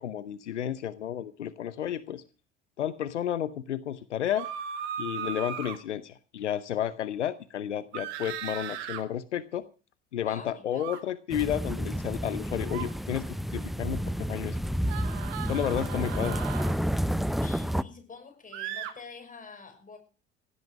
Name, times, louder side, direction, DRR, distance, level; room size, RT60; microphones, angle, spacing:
voice 1, 0.0-2.2 2.8-4.5 5.0-9.7 10.1-14.6 15.5-16.4, left 10 dB, 85° left, 16 dB, 0.7 m, -32 dB
sound 1, 4.3-5.8 7.9-9.0 10.7-11.0 12.6-12.9 14.9-16.8 18.5-18.9, right 9 dB, 70° right, 2.1 m, -37 dB
voice 2, 10.2-10.9 17.4-20.0, left 4 dB, 25° left, 6 dB, 6.1 m, -47 dB
sound 2, 11.3-17.8, equal, ahead, 0.6 m, -30 dB
16.5 x 11.0 x 6.2 m, 0.36 s
figure-of-eight pair, 60°, 34 cm